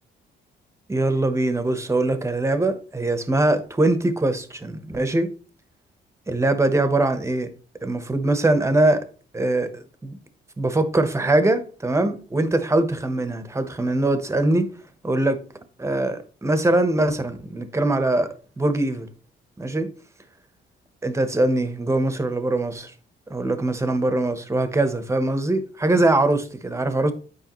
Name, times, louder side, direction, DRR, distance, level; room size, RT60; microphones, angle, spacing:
voice 1, 0.9-5.3 6.3-7.5 7.8-9.0 9.3-10.2 10.6-14.7 15.0-15.4 15.8-18.3 18.6-19.1 19.6-19.9 21.0-22.9 23.3-27.1, right 2 dB, 15° right, 1.0 m, -22 dB
9.2 x 4.8 x 3.1 m
cardioid pair, 90°, 20 cm